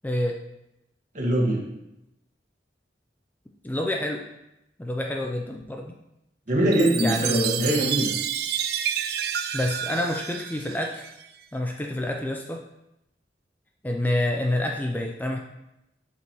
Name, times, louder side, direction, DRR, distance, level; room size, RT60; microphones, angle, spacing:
voice 1, 0.0-0.4 3.6-4.3 4.8-5.9 7.0-7.7 9.5-11.1 11.5-12.6 13.8-15.4, left 1 dB, 10° left, 1 dB, 0.4 m, -28 dB
voice 2, 1.1-1.6 6.5-8.1, equal, 45° right, -2 dB, 1.6 m, -22 dB
Chime, 6.7-11.3, right 9 dB, 60° right, 0.4 m, -29 dB
7.9 x 5.3 x 3.0 m, 0.87 s
head